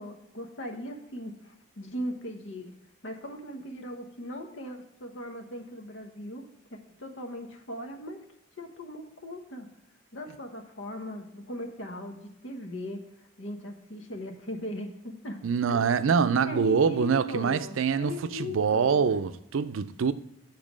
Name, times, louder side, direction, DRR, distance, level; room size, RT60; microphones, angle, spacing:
voice 1, 0.0-2.7 3.0-8.2 8.6-9.7 10.1-15.4 15.7-16.0 16.4-19.0, equal, 75° left, 1.1 m, -39 dB
voice 2, 15.4-20.1, right 6 dB, 90° right, 0.4 m, -25 dB
7.3 x 4.6 x 6.1 m
head